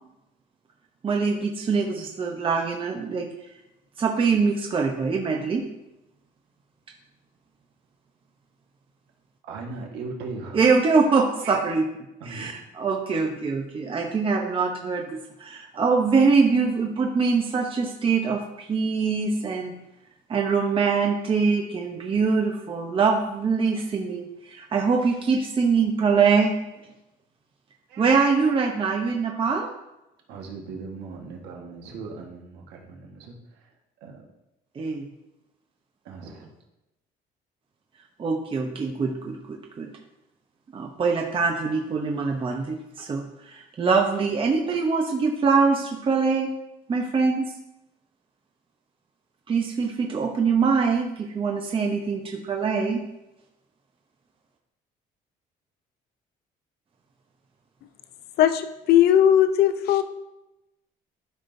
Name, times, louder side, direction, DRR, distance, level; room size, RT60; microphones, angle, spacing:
voice 1, 1.0-3.3 4.0-5.6 10.5-11.8 12.2-19.8 20.3-26.6 28.0-29.7 34.8-35.1 38.2-39.9 40.7-46.5 46.9-47.5 49.5-53.0, right 5 dB, 30° right, 1 dB, 0.8 m, -23 dB
voice 2, 9.5-10.8 11.4-11.7 12.2-12.5 27.9-28.9 30.3-33.4 34.0-34.2 36.0-36.5, right 4 dB, 90° right, 0 dB, 1.5 m, -39 dB
voice 3, 58.4-60.0, left 10 dB, 70° left, 10 dB, 0.6 m, -18 dB
12.5 x 5.0 x 2.7 m, 0.93 s
cardioid pair, 110°, 17 cm